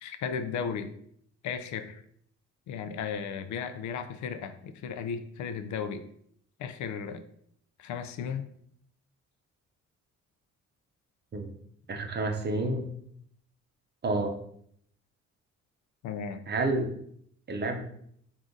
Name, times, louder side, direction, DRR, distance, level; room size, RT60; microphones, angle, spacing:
voice 1, 0.0-0.9 1.4-2.0 2.7-6.0 6.6-7.2 7.8-8.5 16.0-16.4, left 6 dB, 70° left, 10 dB, 0.4 m, -35 dB
voice 2, 11.9-12.9 14.0-14.3 16.5-16.9 17.5-17.8, right 2 dB, 35° right, 4 dB, 0.7 m, -29 dB
3.7 x 2.4 x 3.8 m, 0.67 s
cardioid pair, 90°, 30 cm